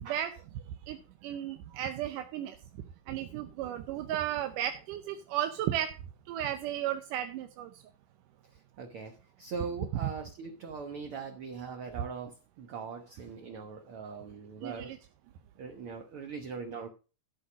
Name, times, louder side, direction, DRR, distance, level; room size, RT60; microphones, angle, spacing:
voice 1, 0.9-2.6 3.1-5.9 6.3-7.8 14.6-15.0, right 11 dB, 90° right, 7 dB, 2.4 m, -34 dB
voice 2, 8.5-14.9 15.6-16.9, right 5 dB, 60° right, 4 dB, 1.6 m, -41 dB
13.0 x 5.6 x 6.0 m, 0.34 s
omnidirectional pair, 3.6 m